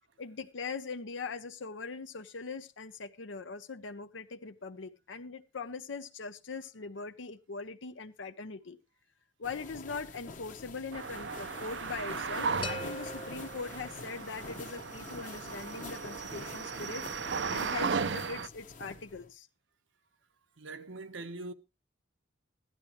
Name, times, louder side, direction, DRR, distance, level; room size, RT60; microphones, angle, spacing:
voice 1, 0.2-8.8 9.4-19.5, left 4 dB, 75° left, 0.7 m, -41 dB
sound 1, 9.4-19.3, left 3 dB, 45° left, 1.1 m, -46 dB
sound 2, 10.9-18.5, right 5 dB, 65° right, 0.6 m, -36 dB
sound 3, 12.6-14.5, left 1 dB, 25° left, 0.6 m, -43 dB
voice 2, 20.6-21.5, right 2 dB, 85° right, 1.1 m, -42 dB
15.0 x 11.5 x 3.1 m
head